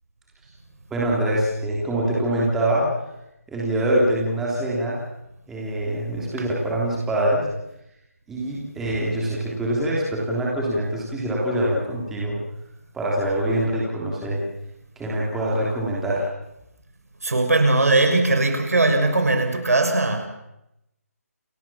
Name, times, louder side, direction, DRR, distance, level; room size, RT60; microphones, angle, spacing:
voice 1, 0.9-2.9 3.5-5.0 5.5-7.5 8.3-12.4 12.9-14.4 14.9-16.3, right 1 dB, 5° right, -5 dB, 3.3 m, -24 dB
voice 2, 17.2-20.3, right 2 dB, 70° right, 7 dB, 6.3 m, -19 dB
29.0 x 20.0 x 7.4 m, 0.85 s
hypercardioid pair, 175°, 8 cm